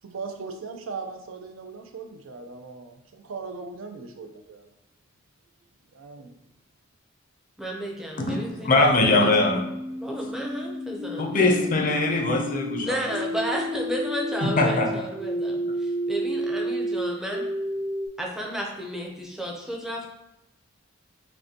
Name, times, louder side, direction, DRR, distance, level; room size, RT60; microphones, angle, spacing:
voice 1, 0.0-4.7 5.9-6.3, right 4 dB, 70° right, 5 dB, 0.5 m, -38 dB
voice 2, 7.6-9.3 10.0-11.8 12.8-17.5 18.2-20.1, right 1 dB, ahead, -1 dB, 0.6 m, -32 dB
voice 3, 8.2-9.6 11.2-13.0 14.4-14.9, left 2 dB, 40° left, 2 dB, 0.6 m, -22 dB
sound 1, 8.8-18.1, equal, 55° right, 1.0 m, -31 dB
5.1 x 2.2 x 2.8 m, 0.88 s
head